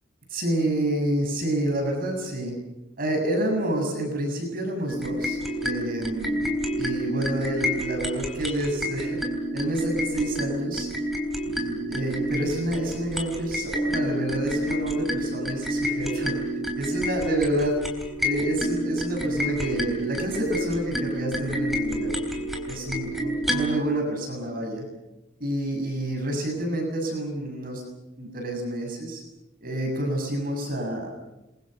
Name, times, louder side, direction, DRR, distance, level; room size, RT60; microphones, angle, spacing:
voice 1, 0.3-2.5 3.0-6.5 6.8-9.2 9.5-10.9 11.5-16.4 16.8-17.8 18.2-22.1 22.7-24.9 25.4-27.8 28.2-29.2 29.6-31.1, right 1 dB, 50° right, 2 dB, 7.2 m, -28 dB
sound 1, 4.9-23.8, equal, ahead, 3.8 m, -29 dB
29.0 x 22.5 x 6.7 m, 0.97 s
head